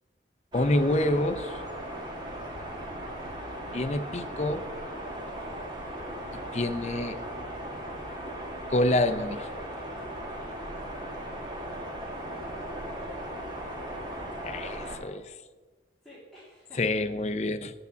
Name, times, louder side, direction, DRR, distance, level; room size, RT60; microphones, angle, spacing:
voice 1, 0.5-1.6 3.7-4.7 6.5-7.2 8.7-9.5 14.4-15.3 16.8-17.7, left 1 dB, 35° left, 8 dB, 0.5 m, -27 dB
sound 1, 0.5-15.0, right 1 dB, 25° right, 1.8 m, -37 dB
voice 2, 12.2-13.9 16.0-16.8, equal, ahead, -10 dB, 2.5 m, -53 dB
8.2 x 6.9 x 8.3 m, 1.3 s
head